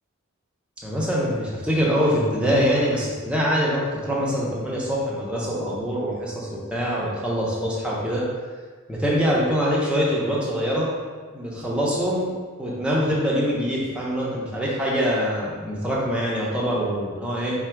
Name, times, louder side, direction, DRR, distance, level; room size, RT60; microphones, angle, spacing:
voice 1, 0.8-8.3 8.9-10.9 11.3-12.3 12.6-17.6, equal, 5° right, -6 dB, 0.8 m, -24 dB
4.3 x 2.4 x 4.4 m, 1.5 s
head